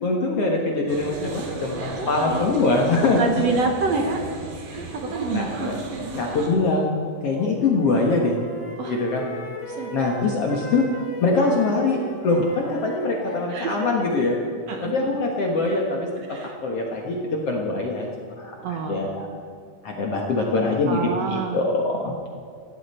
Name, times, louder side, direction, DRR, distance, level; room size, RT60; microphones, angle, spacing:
voice 1, 0.0-3.2 4.7-5.0 5.3-5.5 6.1-6.9 7.2-8.4 8.9-9.3 9.9-10.9 11.2-12.0 12.2-14.4 14.8-18.1 18.4-19.3 19.8-22.1, left 3 dB, 55° left, -1 dB, 2.1 m, -23 dB
sound 1, 0.9-6.5, right 2 dB, 85° right, 3.8 m, -35 dB
voice 2, 2.0-2.5 3.2-4.2 4.7-6.1 8.8-9.0 9.7-9.9 13.5-13.9 14.7-15.1 16.2-16.6 18.6-19.1 20.9-21.6, right 4 dB, 60° right, 4 dB, 1.9 m, -28 dB
Wind instrument woodwind instrument, 7.2-13.9, left 1 dB, 85° left, 4.5 m, -38 dB
19.0 x 15.0 x 4.4 m, 2.3 s
omnidirectional pair, 3.8 m